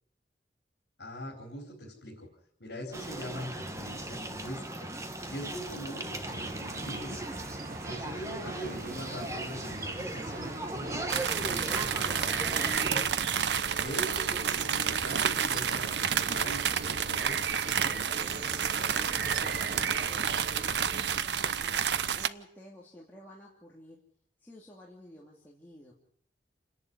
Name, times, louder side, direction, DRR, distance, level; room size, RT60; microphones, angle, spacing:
voice 1, 1.0-2.3 2.6-4.9 5.2-7.2 7.8-13.1 13.8-17.5, equal, 75° left, -1 dB, 4.7 m, -42 dB
sound 1, 2.9-13.0, right 1 dB, 15° right, 1.3 m, -38 dB
sound 2, 6.2-21.2, right 3 dB, 50° right, 0.9 m, -42 dB
sound 3, 11.1-22.3, right 8 dB, 75° right, 0.8 m, -30 dB
voice 2, 17.8-24.0 24.4-25.9, equal, 10° left, -4 dB, 2.7 m, -52 dB
28.5 x 11.0 x 9.7 m, 0.68 s
head